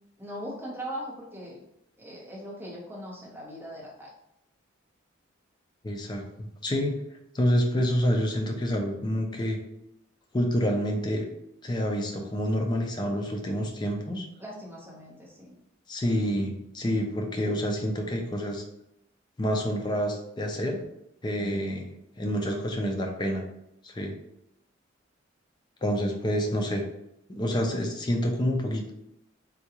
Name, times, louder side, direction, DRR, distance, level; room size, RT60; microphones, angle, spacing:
voice 1, 0.2-1.6 2.0-4.1 14.4-15.5 21.4-21.7, equal, 10° right, -4 dB, 0.8 m, -40 dB
voice 2, 5.8-6.9 7.3-9.6 10.3-11.3 11.6-14.3 15.9-18.6 19.4-20.8 21.2-21.9 22.2-23.4 23.8-24.2 25.8-26.8 27.3-28.9, equal, 20° left, 2 dB, 0.4 m, -28 dB
3.6 x 2.3 x 2.9 m, 0.82 s
head